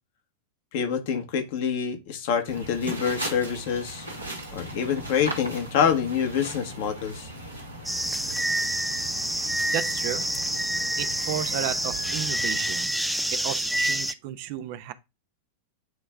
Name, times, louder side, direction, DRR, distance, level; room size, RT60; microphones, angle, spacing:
voice 1, 0.7-4.0 4.5-7.3, left 7 dB, 50° left, 1.4 m, -26 dB
sound 1, 2.5-12.9, right 1 dB, 85° right, 1.8 m, -38 dB
sound 2, 7.8-14.1, right 1 dB, ahead, 0.5 m, -27 dB
voice 2, 9.3-10.3 10.8-12.9 13.3-14.9, right 11 dB, 45° right, 0.7 m, -33 dB
9.3 x 3.3 x 3.7 m
figure-of-eight pair, 90°, 0 cm